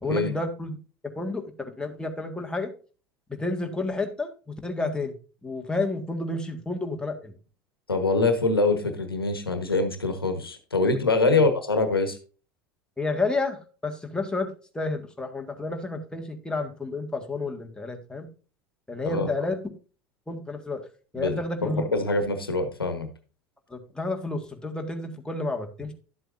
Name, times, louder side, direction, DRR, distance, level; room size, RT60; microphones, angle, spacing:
voice 1, 0.0-0.8 1.1-2.7 3.3-5.1 5.4-7.3 11.3-11.4 13.0-18.3 18.9-19.6 20.3-20.8 21.1-21.8 23.7-25.9, left 2 dB, 5° left, 3 dB, 1.8 m, -30 dB
voice 2, 7.9-12.2 19.1-19.3 21.2-23.1, left 3 dB, 90° left, 8 dB, 1.2 m, -24 dB
11.5 x 7.8 x 2.6 m, 0.36 s
figure-of-eight pair, 75°, 12 cm